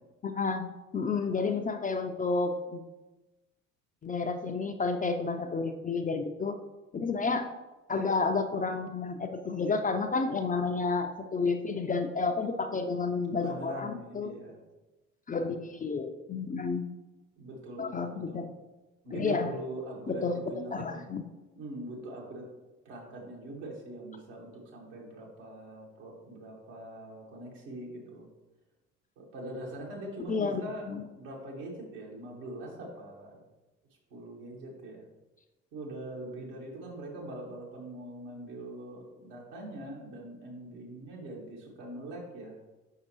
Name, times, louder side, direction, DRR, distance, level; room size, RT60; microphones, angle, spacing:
voice 1, 0.2-0.7 0.9-2.8 4.0-6.5 6.9-7.5 7.9-14.3 15.3-16.9 17.8-18.5 19.1-19.5 20.1-20.4 20.7-21.2 30.3-31.0, left 4 dB, 20° left, 5 dB, 0.5 m, -31 dB
voice 2, 13.3-14.6 17.4-18.4 19.0-21.1 21.5-22.5 22.9-28.3 29.2-33.4 34.1-35.1 35.7-42.6, right 1 dB, 70° right, -2 dB, 1.8 m, -42 dB
6.6 x 5.8 x 3.0 m, 1.1 s
figure-of-eight pair, 55°, 39 cm